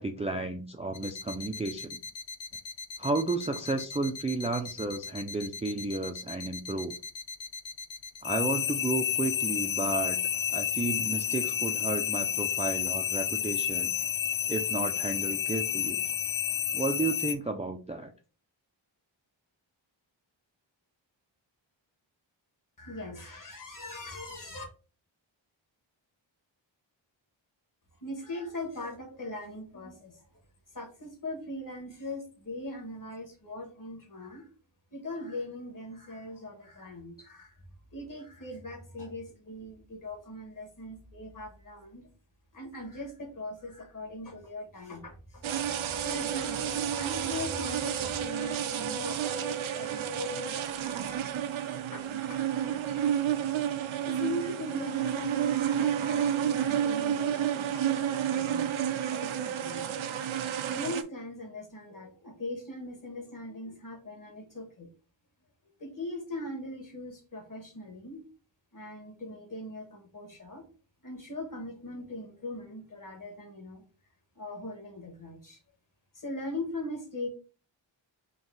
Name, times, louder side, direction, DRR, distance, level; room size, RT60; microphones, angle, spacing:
voice 1, 0.0-2.0 3.0-6.9 8.2-10.2 10.5-13.9 14.5-16.0 16.7-18.1, right 3 dB, 15° right, 4 dB, 0.3 m, -32 dB
sound 1, 0.9-17.3, left 9 dB, 75° left, 0.6 m, -31 dB
voice 2, 22.8-24.6 28.0-30.2 30.7-34.5 34.9-37.6 37.9-42.1 42.5-53.0 54.1-58.7 59.1-59.8 60.7-64.9 65.8-68.2 68.7-70.6 71.0-73.8 74.3-75.6 76.1-77.3, left 1 dB, 45° left, 3 dB, 1.3 m, -40 dB
sound 2, 45.4-61.0, right 9 dB, 85° right, 0.5 m, -30 dB
3.9 x 2.7 x 3.8 m, 0.36 s
wide cardioid pair, 105°, 47 cm